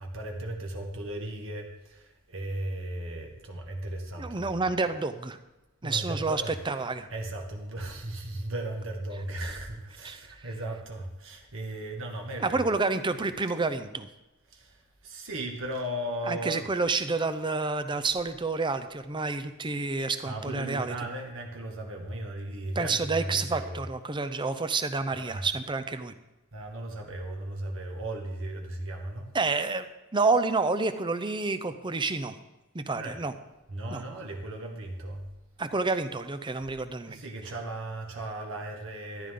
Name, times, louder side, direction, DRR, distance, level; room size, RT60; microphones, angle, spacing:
voice 1, 0.0-4.7 5.8-6.5 7.1-12.6 14.5-16.7 20.2-23.8 25.1-25.5 26.5-29.3 32.9-33.2 33.7-35.3 37.1-39.3, right 1 dB, 60° right, 1 dB, 1.8 m, -36 dB
voice 2, 4.2-5.4 5.8-7.1 10.0-10.2 12.4-14.1 16.3-20.9 22.8-26.1 29.3-29.9 30.1-32.3 32.7-33.3 33.9-34.0 35.6-37.2, right 3 dB, 20° right, 11 dB, 0.6 m, -29 dB
14.0 x 11.0 x 3.8 m, 1.0 s
head